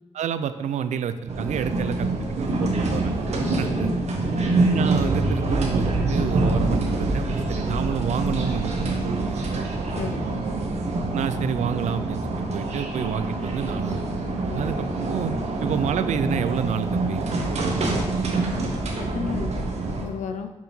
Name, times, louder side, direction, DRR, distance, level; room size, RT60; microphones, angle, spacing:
voice 1, 0.1-3.1 3.6-4.0 4.7-10.0 11.1-12.2 12.5-14.0 14.5-15.3 15.6-17.3 17.6-18.0, right 8 dB, 85° right, 12 dB, 0.5 m, -29 dB
sound 1, 1.3-20.1, right 2 dB, 65° right, 1.3 m, -25 dB
voice 2, 10.0-10.3 14.5-14.7 19.0-20.5, left 6 dB, 85° left, 8 dB, 0.6 m, -33 dB
5.6 x 4.8 x 5.4 m, 1.2 s
cardioid pair, 85°, 12 cm